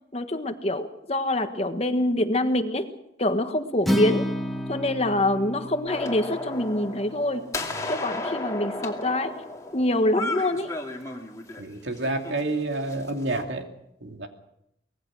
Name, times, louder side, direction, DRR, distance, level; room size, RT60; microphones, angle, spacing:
voice 1, 0.1-2.9 3.2-4.2 4.7-7.4 7.9-9.3 9.7-10.7, left 1 dB, 35° left, 8 dB, 1.4 m, -25 dB
Acoustic guitar, 3.8-8.1, equal, ahead, 1.8 m, -31 dB
sound 1, 5.9-11.6 12.0-13.4, left 2 dB, 20° left, 2.5 m, -34 dB
voice 2, 11.6-13.7 14.0-14.3, right 2 dB, 75° right, 4 dB, 2.7 m, -29 dB
24.5 x 19.5 x 6.3 m, 0.79 s
head